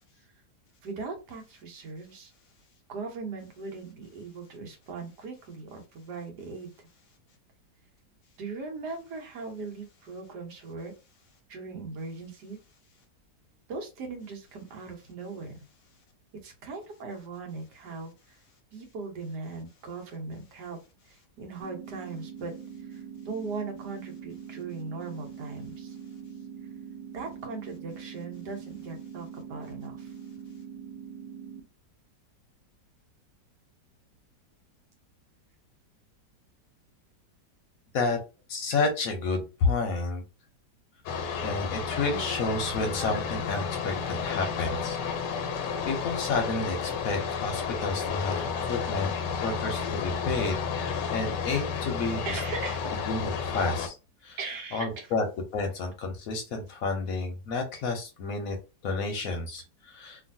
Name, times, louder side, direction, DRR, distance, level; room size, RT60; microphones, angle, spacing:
voice 1, 0.8-2.3 2.9-6.9 8.4-10.9 11.5-12.6 13.7-15.7 16.4-18.4 18.7-20.8 21.1-22.5 22.8-26.0 27.1-30.1 52.2-52.9 54.4-55.1, right 4 dB, 75° right, 3 dB, 1.4 m, -39 dB
sound 1, 21.6-31.6, right 7 dB, 45° right, 0.5 m, -43 dB
voice 2, 38.5-40.2 41.4-45.0 45.9-52.2 53.1-53.9 54.2-54.4 54.7-55.2 55.5-58.5 58.8-60.2, left 3 dB, 65° left, 4 dB, 1.0 m, -30 dB
sound 2, 41.1-53.9, left 6 dB, 85° left, 1.3 m, -32 dB
3.0 x 2.5 x 2.6 m, 0.29 s
omnidirectional pair, 1.9 m